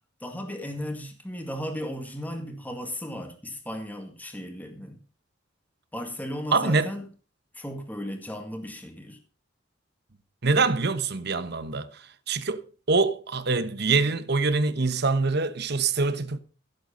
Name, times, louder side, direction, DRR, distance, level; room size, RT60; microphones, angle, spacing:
voice 1, 0.2-5.0 5.9-7.1 7.6-9.2, equal, 10° left, 2.0 m, -35 dB
voice 2, 6.5-6.9 10.4-11.9 12.3-12.6 12.9-16.4, right 4 dB, 55° right, 1.2 m, -24 dB
16.0 x 8.0 x 5.5 m
head